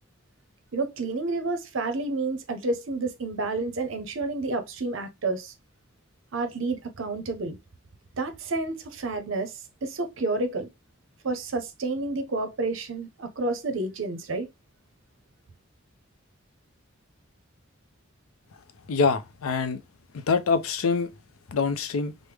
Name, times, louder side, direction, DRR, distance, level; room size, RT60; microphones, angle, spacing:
voice 1, 0.7-5.5 6.3-7.6 8.2-10.7 11.2-14.5, right 3 dB, 65° right, 0.6 m, -30 dB
voice 2, 18.9-19.8 20.1-21.1 21.5-22.1, left 5 dB, 85° left, 0.5 m, -25 dB
3.4 x 2.0 x 3.2 m
head